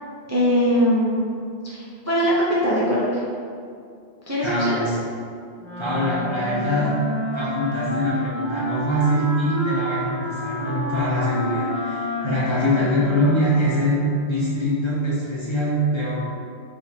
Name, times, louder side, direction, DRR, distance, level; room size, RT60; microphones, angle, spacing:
voice 1, 0.3-1.4 1.6-2.3 2.6-3.2 4.3-4.8, equal, 25° right, -9 dB, 0.4 m, -21 dB
voice 2, 4.4-4.9 5.8-7.0 7.3-16.2, equal, 35° left, -9 dB, 0.5 m, -23 dB
Wind instrument woodwind instrument, 5.6-14.3, right 1 dB, ahead, 1.0 m, -29 dB
3.0 x 2.4 x 4.2 m, 2.4 s
omnidirectional pair, 1.1 m